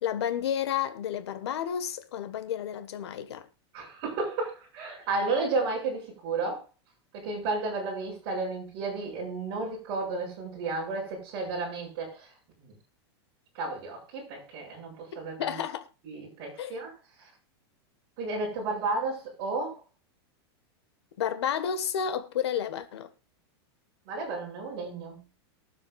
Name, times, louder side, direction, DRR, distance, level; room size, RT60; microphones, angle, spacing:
voice 1, 0.0-3.5 15.4-15.9 16.6-16.8 21.2-23.1, left 9 dB, 85° left, 1.5 m, -31 dB
voice 2, 3.7-6.6 7.1-12.3 12.6-12.7 13.5-15.6 16.0-16.9 18.2-19.8 24.1-25.2, right 3 dB, 35° right, 6.4 m, -32 dB
23.0 x 7.8 x 2.5 m
supercardioid pair, 175°, 14 cm